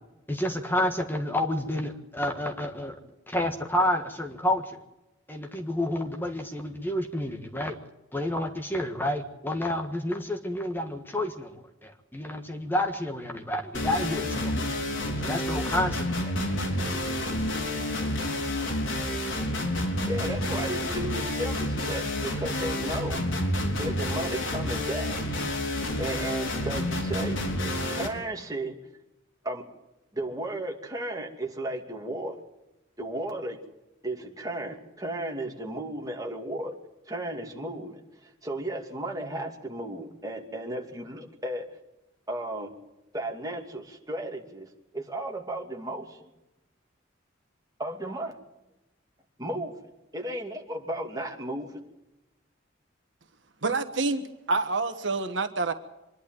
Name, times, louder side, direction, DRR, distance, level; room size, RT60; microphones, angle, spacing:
voice 1, 0.3-2.9 3.3-4.8 5.3-7.7 8.1-14.7 15.2-16.4, left 1 dB, 10° left, 3 dB, 1.6 m, -29 dB
sound 1, 13.7-28.1, left 1 dB, 75° left, 4.1 m, -29 dB
voice 2, 19.9-23.2 23.8-25.2 26.0-27.4 27.9-28.8 29.4-29.7 30.1-32.4 33.0-33.6 34.0-36.8 37.1-41.7 42.3-42.7 43.1-46.3 47.8-48.4 49.4-49.8 50.1-51.8, right 1 dB, 20° right, 1 dB, 2.7 m, -34 dB
voice 3, 53.6-55.7, right 3 dB, 65° right, 8 dB, 1.4 m, -27 dB
25.0 x 11.5 x 9.1 m, 0.98 s
head